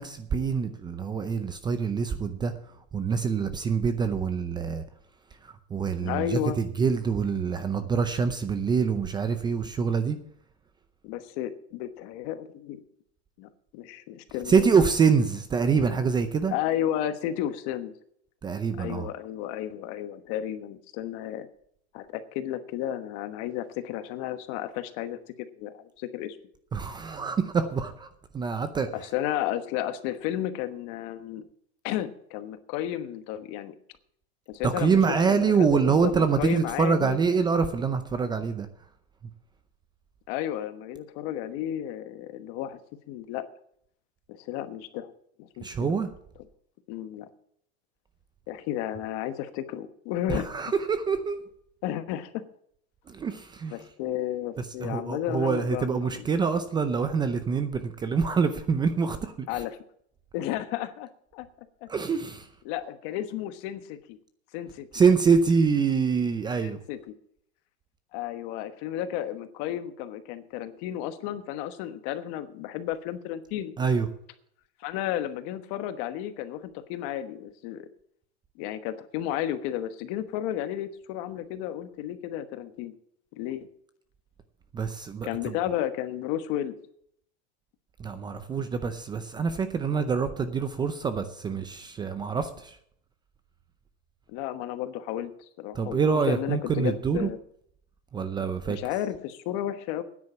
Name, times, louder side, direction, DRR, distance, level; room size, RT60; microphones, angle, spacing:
voice 1, 0.0-2.5 2.9-4.8 5.4-10.2 14.5-16.5 18.4-19.1 26.7-28.1 28.3-28.9 34.6-38.7 45.6-46.1 50.3-51.4 53.1-53.7 54.8-59.5 61.9-62.5 64.9-66.8 73.8-74.1 84.7-85.5 88.0-92.8 95.8-97.3 98.1-98.8, right 5 dB, 15° right, 0.6 m, -25 dB
voice 2, 6.0-6.6 11.0-12.8 13.4-14.7 16.5-17.9 18.7-21.5 21.9-26.4 28.9-31.4 31.8-33.7 34.5-37.2 40.3-42.8 43.1-43.4 44.3-45.1 45.4-46.0 46.9-47.3 48.5-50.6 51.8-52.4 53.7-56.6 59.5-59.8 60.3-61.5 62.6-64.2 64.5-64.9 66.6-67.2 68.1-73.7 74.8-77.9 78.6-82.9 83.4-83.7 85.2-86.8 94.3-95.3 95.6-96.0 96.3-97.4 98.7-100.0, left 11 dB, 45° left, 1.2 m, -33 dB
9.7 x 9.3 x 7.0 m
supercardioid pair, 150°, 32 cm